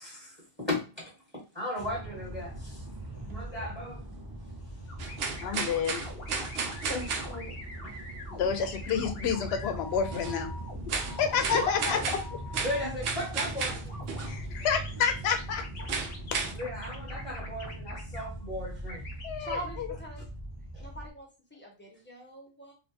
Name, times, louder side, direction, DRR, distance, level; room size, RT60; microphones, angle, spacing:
voice 1, 0.0-2.8 3.3-4.0 7.8-8.0 11.9-12.0 12.6-13.9 16.5-19.0 20.7-20.9, left 1 dB, 10° right, -5 dB, 1.4 m, -36 dB
sound 1, 1.8-21.1, right 1 dB, 30° right, 0.5 m, -41 dB
sound 2, 4.9-12.8 13.9-14.3 14.6-18.3 18.9-19.6, left 2 dB, 70° left, 1.1 m, -45 dB
sound 3, 5.0-7.4 10.1-10.4 10.9-14.4 15.9-16.5, right 5 dB, 75° right, 0.8 m, -33 dB
voice 2, 5.4-6.0 8.3-10.5 10.9-12.2 14.2-15.6 16.3-16.4 19.2-20.0, left 7 dB, 90° left, 7 dB, 0.8 m, -29 dB
voice 3, 6.9-7.5 10.9-12.1 19.4-20.2 20.8-22.7, left 1 dB, 10° left, -1 dB, 0.9 m, -40 dB
3.3 x 2.5 x 2.7 m, 0.32 s
omnidirectional pair, 1.0 m